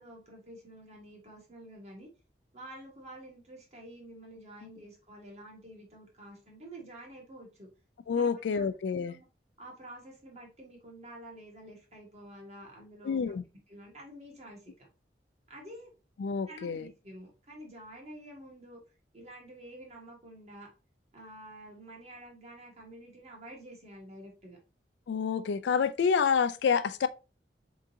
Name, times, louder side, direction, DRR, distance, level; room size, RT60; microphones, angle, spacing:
voice 1, 0.0-2.1 2.5-7.7 8.2-8.6 8.9-9.3 9.6-13.2 13.7-14.9 15.5-15.9 16.5-18.8 19.1-20.7 21.1-24.6, right 1 dB, 40° right, 1.3 m, -49 dB
voice 2, 8.1-9.2 13.0-13.4 16.2-16.9 25.1-27.1, left 6 dB, 80° left, 0.3 m, -28 dB
3.8 x 3.6 x 2.7 m
head